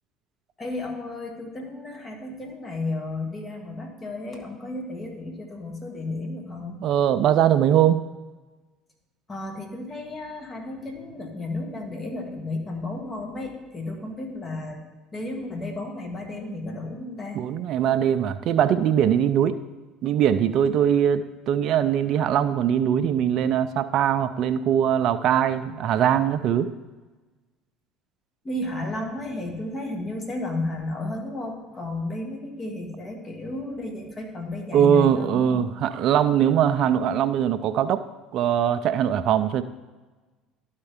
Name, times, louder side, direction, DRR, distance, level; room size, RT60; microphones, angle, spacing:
voice 1, 0.6-6.8 9.3-14.8 15.1-17.4 28.4-35.7, left 2 dB, 30° left, 2 dB, 1.7 m, -33 dB
voice 2, 6.8-8.0 17.3-19.6 20.0-26.7 34.7-38.1 38.3-39.6, right 9 dB, 60° right, 11 dB, 0.3 m, -21 dB
11.5 x 4.4 x 3.6 m, 1.2 s
hypercardioid pair, 70°, 0 cm